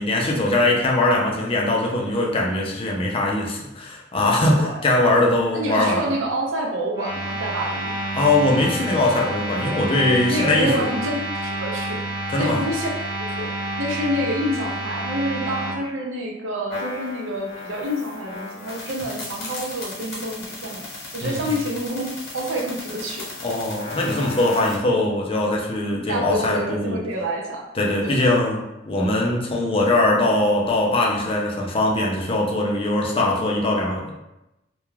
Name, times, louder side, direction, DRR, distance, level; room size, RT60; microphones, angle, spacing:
voice 1, 0.0-6.2 8.1-11.0 12.3-12.6 21.2-21.5 23.4-27.0 27.8-34.1, left 2 dB, 30° left, -1 dB, 0.4 m, -21 dB
voice 2, 5.5-7.9 10.3-12.0 12.4-13.5 13.8-20.8 21.1-23.2 26.1-27.7 28.0-28.3, equal, 80° right, -1 dB, 0.6 m, -28 dB
sound 1, 6.9-15.8, right 1 dB, 20° right, 0.9 m, -29 dB
sound 2, 16.7-24.8, left 2 dB, 55° left, 1.0 m, -36 dB
2.3 x 2.2 x 3.1 m, 0.92 s
head